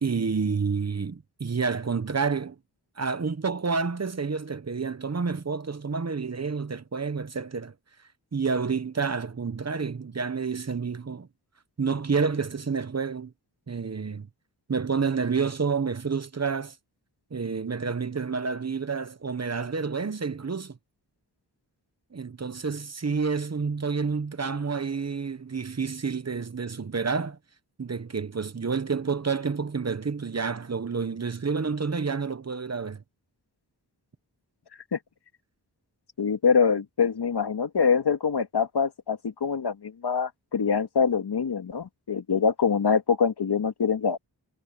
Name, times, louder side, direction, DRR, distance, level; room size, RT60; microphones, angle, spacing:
voice 1, 0.0-2.6 3.0-7.7 8.3-11.3 11.8-13.3 13.7-14.3 14.7-16.7 17.3-20.8 22.1-27.4 27.8-33.0, right 5 dB, 40° right, 1.2 m, -29 dB
voice 2, 36.2-44.2, left 6 dB, 70° left, 2.2 m, -24 dB
cardioid pair, 65°, 41 cm